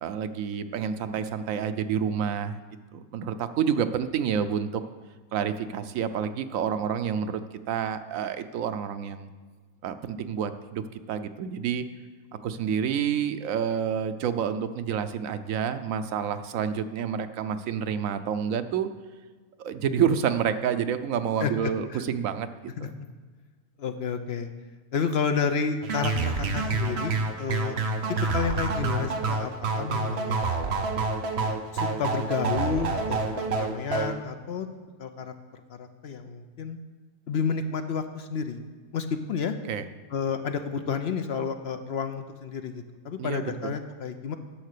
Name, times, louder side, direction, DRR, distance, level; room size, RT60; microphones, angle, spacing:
voice 1, 0.0-2.6 2.9-4.8 5.3-7.4 7.7-9.3 9.8-11.9 12.4-18.9 19.6-22.5 22.8-22.9 39.7-39.9 43.2-43.7, right 8 dB, 85° right, 10 dB, 1.1 m, -28 dB
voice 2, 23.8-24.5 24.9-27.8 28.1-30.5 31.4-34.7 35.0-35.3 35.7-36.8 37.3-38.6 38.9-39.6 40.1-44.4, left 6 dB, 60° left, 8 dB, 0.8 m, -31 dB
sound 1, 25.8-34.1, right 3 dB, 55° right, 1.0 m, -28 dB
10.5 x 6.5 x 6.6 m, 1.4 s
omnidirectional pair, 1.4 m